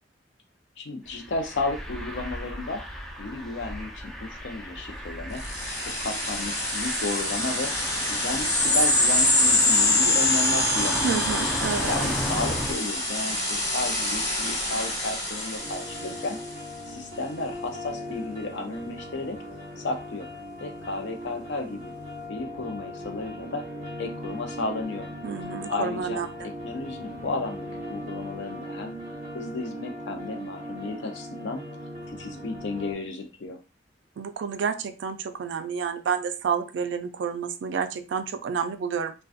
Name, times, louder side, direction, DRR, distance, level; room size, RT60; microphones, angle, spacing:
voice 1, 0.8-2.8 3.2-5.4 5.8-7.7 8.1-11.2 11.9-16.4 16.9-19.4 19.8-20.3 20.6-21.9 22.3-23.7 24.0-25.1 25.7-29.0 29.3-31.6 32.1-33.6, left 2 dB, 70° left, 5 dB, 0.5 m, -33 dB
sound 1, 1.1-12.7, equal, ahead, 0.4 m, -34 dB
sound 2, 5.4-16.5, left 2 dB, 35° left, 1.1 m, -25 dB
voice 2, 11.0-11.9 25.2-26.3 34.2-39.1, right 6 dB, 70° right, 9 dB, 0.3 m, -29 dB
sound 3, 15.6-32.9, equal, 40° right, 1.0 m, -39 dB
2.5 x 2.2 x 2.4 m, 0.32 s
head